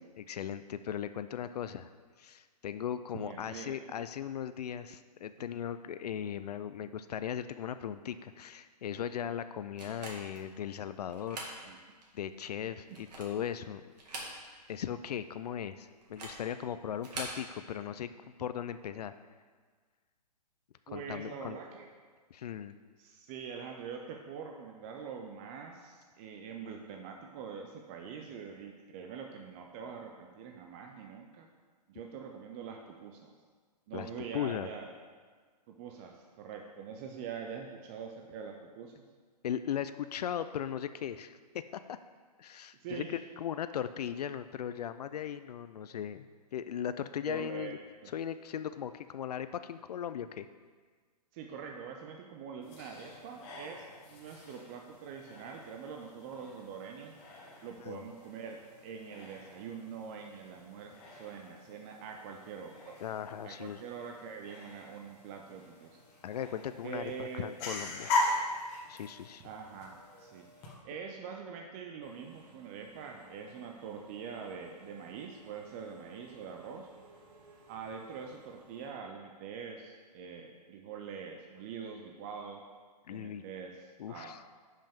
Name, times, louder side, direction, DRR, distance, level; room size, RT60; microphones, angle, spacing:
voice 1, 0.0-1.9 2.2-11.4 12.1-13.8 14.7-18.1 18.4-19.1 20.9-21.6 22.3-22.7 33.9-34.7 39.4-42.0 42.4-46.3 46.5-47.8 48.1-50.5 57.8-58.1 63.0-63.8 66.2-68.2 68.9-69.5 83.1-83.4 84.0-84.4, left 9 dB, 70° left, 12 dB, 0.4 m, -38 dB
voice 2, 3.1-3.8 6.8-6.9 11.7-11.8 20.9-21.9 23.0-31.5 31.9-33.3 33.9-34.9 35.7-39.0 42.8-43.2 47.3-47.7 48.0-48.1 51.3-57.1 57.6-62.9 63.4-66.0 66.8-67.5 69.4-70.5 70.8-76.9 77.7-82.6 83.1-84.4, right 6 dB, 20° right, 2 dB, 0.4 m, -44 dB
sound 1, 9.8-10.5 11.1-11.6 12.0-12.1 12.8-13.4 13.9-14.7 15.0-15.1 16.0-16.4 17.0-17.4, right 2 dB, 70° right, 2.1 m, -43 dB
sound 2, 52.6-70.7, left 2 dB, 30° left, 1.3 m, -41 dB
Engine / Mechanisms, 72.0-78.9, right 3 dB, 50° right, 2.2 m, -59 dB
10.5 x 5.5 x 3.5 m, 1.5 s
hypercardioid pair, 150°, 21 cm